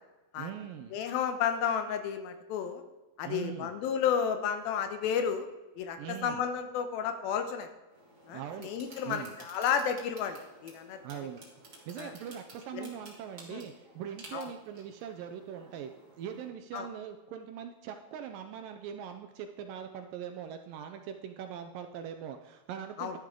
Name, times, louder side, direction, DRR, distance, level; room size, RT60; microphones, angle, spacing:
voice 1, 0.4-1.0 3.2-3.7 6.0-6.5 8.3-8.7 9.0-9.3 11.0-11.4 11.9-15.9 16.2-23.2, right 9 dB, 80° right, 6 dB, 2.1 m, -41 dB
voice 2, 0.9-2.8 3.2-5.5 5.8-7.7 8.3-11.0 12.0-12.1 12.7-12.9 13.5-13.6 14.3-14.5 16.7-16.9 23.0-23.1, left 7 dB, 80° left, 8 dB, 2.6 m, -32 dB
sound 1, 7.9-16.5, right 2 dB, 25° right, 1.9 m, -54 dB
12.5 x 10.5 x 3.7 m, 1.1 s
omnidirectional pair, 4.4 m